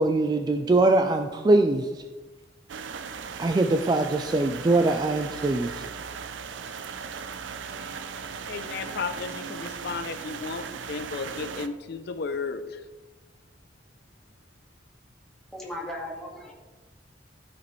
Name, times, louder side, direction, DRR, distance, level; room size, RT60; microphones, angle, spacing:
voice 1, 0.0-1.9 3.4-5.8, right 2 dB, 20° right, 6 dB, 0.3 m, -22 dB
sound 1, 2.7-11.7, right 6 dB, 85° right, 0.5 m, -37 dB
voice 2, 8.2-12.9, left 4 dB, 60° left, 10 dB, 0.4 m, -34 dB
voice 3, 15.5-16.5, left 1 dB, 5° left, -4 dB, 1.7 m, -36 dB
13.5 x 5.0 x 3.1 m, 1.3 s
head